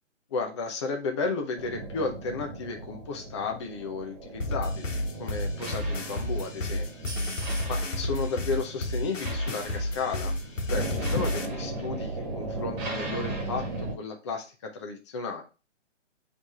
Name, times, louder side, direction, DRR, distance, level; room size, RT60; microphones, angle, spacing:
voice 1, 0.3-4.9 5.2-6.9 7.7-10.3 10.7-15.4, left 4 dB, 25° left, 2 dB, 0.7 m, -33 dB
sound 1, 1.6-13.9, right 2 dB, 25° right, 1.6 m, -37 dB
sound 2, 4.4-11.4, left 1 dB, 90° left, 1.4 m, -31 dB
7.1 x 3.3 x 4.1 m, 0.32 s
hypercardioid pair, 155°, 37 cm